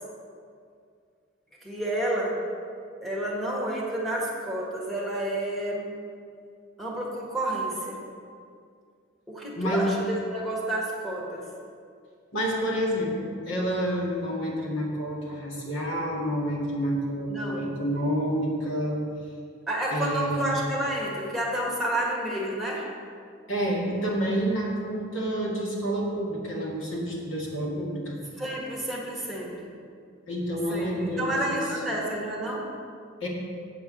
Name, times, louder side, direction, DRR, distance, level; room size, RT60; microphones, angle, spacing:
voice 1, 1.6-2.4 3.0-6.0 6.8-8.0 9.3-11.4 17.3-17.7 19.7-22.9 28.4-29.7 30.7-32.7, right 1 dB, ahead, -5 dB, 1.4 m, -30 dB
voice 2, 9.6-9.9 12.3-19.0 19.9-20.5 23.5-28.2 30.3-31.6 33.2-33.3, equal, 65° left, -3 dB, 1.9 m, -28 dB
8.1 x 4.6 x 6.8 m, 2.3 s
head